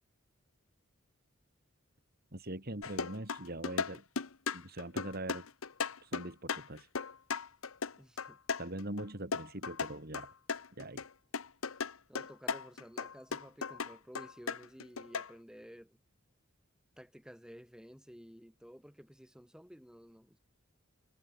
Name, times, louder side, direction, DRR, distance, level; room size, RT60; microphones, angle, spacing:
voice 1, 2.3-4.0 4.5-5.4 6.0-6.9 8.6-10.3 10.8-11.1, right 1 dB, 50° right, 3.5 m, -42 dB
sound 1, 2.8-9.0 9.3-11.1 11.3-15.3, left 5 dB, 85° left, 1.1 m, -37 dB
voice 2, 8.0-8.4 12.1-16.0 17.0-20.4, equal, 5° right, 7.3 m, -53 dB
head